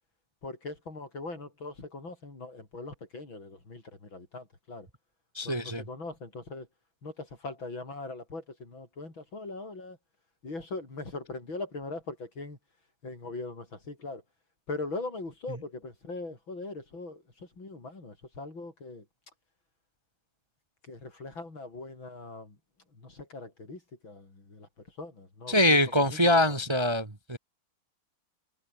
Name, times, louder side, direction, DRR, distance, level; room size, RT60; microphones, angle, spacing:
voice 1, 0.4-4.9 5.4-6.7 7.0-10.0 10.4-12.6 13.0-14.2 14.7-19.1 20.8-22.6 22.9-25.8 26.1-26.6, left 3 dB, 70° left, 7.1 m, -41 dB
voice 2, 5.3-5.8 25.5-27.4, left 1 dB, 15° right, 1.5 m, -24 dB
omnidirectional pair, 2.2 m